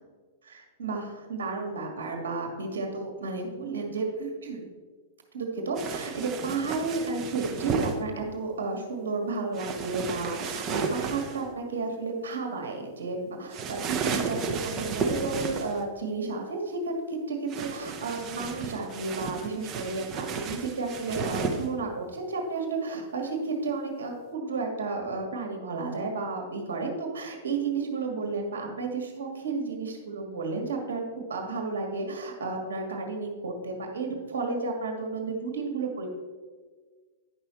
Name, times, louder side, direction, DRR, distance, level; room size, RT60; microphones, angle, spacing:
voice 1, 0.4-4.7 5.3-36.1, right 3 dB, 70° right, 2 dB, 1.7 m, -32 dB
sound 1, 5.8-8.0 9.5-11.4 13.5-15.8 17.5-21.7, right 5 dB, 30° right, 1.0 m, -33 dB
9.9 x 5.6 x 4.4 m, 1.5 s
figure-of-eight pair, 100°, 0 cm